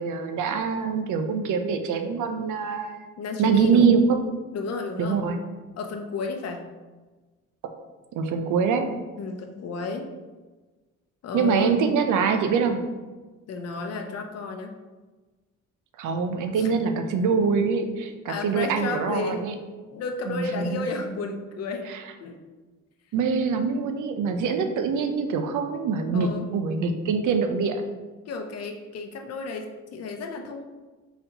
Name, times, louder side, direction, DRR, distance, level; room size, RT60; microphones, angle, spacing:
voice 1, 0.0-3.1 3.4-4.2 5.0-5.4 8.2-8.9 11.3-12.8 16.0-19.5 20.3-20.8 21.9-22.0 23.1-27.8, right 5 dB, 80° right, 6 dB, 0.6 m, -24 dB
voice 2, 3.2-3.9 4.5-5.2 5.8-6.7 9.2-10.1 11.2-11.8 13.5-14.8 16.6-16.7 18.3-19.5 19.9-21.9 22.2-22.4 26.1-26.5 28.3-30.6, left 4 dB, 55° left, 4 dB, 0.7 m, -32 dB
4.1 x 4.0 x 2.8 m, 1.3 s
cardioid pair, 90°, 30 cm